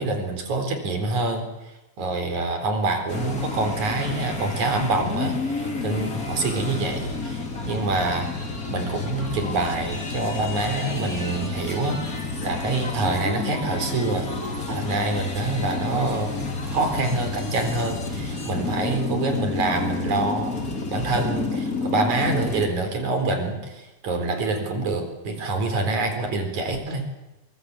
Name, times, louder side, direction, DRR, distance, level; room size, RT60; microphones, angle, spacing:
voice 1, 0.0-8.3 8.7-14.3 14.7-27.0, right 2 dB, 65° right, 7 dB, 5.4 m, -26 dB
sound 1, 3.1-22.7, left 3 dB, 25° left, 3.4 m, -30 dB
23.5 x 23.5 x 8.3 m, 0.99 s
omnidirectional pair, 3.6 m